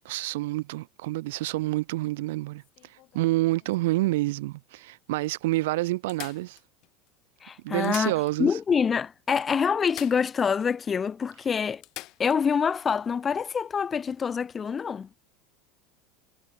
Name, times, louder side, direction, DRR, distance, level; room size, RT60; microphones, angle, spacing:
voice 1, 0.0-2.6 3.1-6.6 7.6-8.5, right 19 dB, 85° right, 1.0 m, -28 dB
sound 1, 2.6-4.2 4.9-5.0 5.2-5.3 6.1-7.1 7.7-8.7 8.9-9.0 9.9-10.7 11.1-11.2 11.8-12.4 14.4-14.5, left 18 dB, 50° left, 3.5 m, -45 dB
voice 2, 7.4-8.1 8.4-11.8 12.2-15.1, left 6 dB, 20° left, 0.4 m, -26 dB
supercardioid pair, 135°, 0 cm